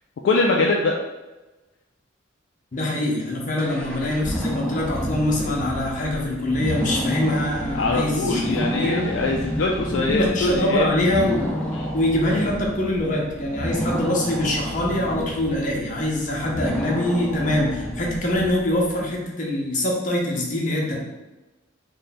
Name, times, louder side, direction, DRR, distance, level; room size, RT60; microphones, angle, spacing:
voice 1, 0.2-1.0 7.7-10.9 11.7-11.9, left 3 dB, 70° left, 0 dB, 0.3 m, -23 dB
voice 2, 2.7-9.1 9.9-11.5 11.9-21.0, left 1 dB, 40° left, -2 dB, 0.7 m, -24 dB
sound 1, 3.6-19.0, equal, 5° left, 0.4 m, -30 dB
3.2 x 2.2 x 4.0 m, 1.1 s
head